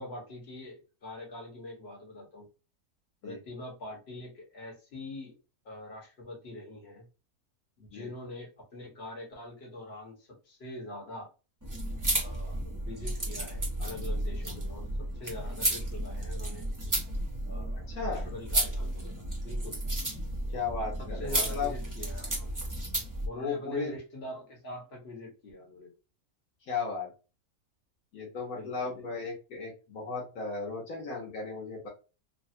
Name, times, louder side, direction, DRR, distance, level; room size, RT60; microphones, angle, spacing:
voice 1, 0.0-2.5 3.2-5.4 5.6-7.1 7.8-11.3 12.2-16.7 17.5-19.8 21.0-22.5 23.2-25.9 28.5-29.1, left 1 dB, 45° left, -2 dB, 1.5 m, -44 dB
sound 1, 11.6-23.3, right 1 dB, 15° right, 0.7 m, -33 dB
voice 2, 20.5-21.7 23.3-23.9 26.6-27.1 28.1-31.9, left 4 dB, 75° left, -2 dB, 1.5 m, -35 dB
3.3 x 2.3 x 2.7 m, 0.32 s
omnidirectional pair, 1.6 m